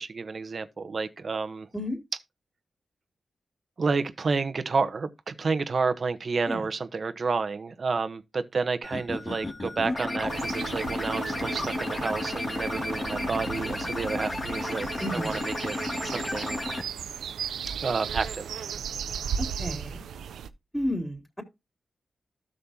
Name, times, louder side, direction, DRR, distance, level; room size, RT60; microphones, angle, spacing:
voice 1, 0.0-1.7 3.8-15.8 16.0-16.6 17.8-18.6, right 4 dB, 55° right, 1.1 m, -30 dB
sound 1, 8.8-16.8, left 2 dB, 40° left, 2.6 m, -32 dB
sound 2, 10.3-20.5, right 7 dB, 85° right, 0.6 m, -36 dB
voice 2, 15.0-15.4 19.4-20.0 20.7-21.4, left 1 dB, 5° left, 3.7 m, -32 dB
13.0 x 6.7 x 2.9 m
supercardioid pair, 45°, 0 cm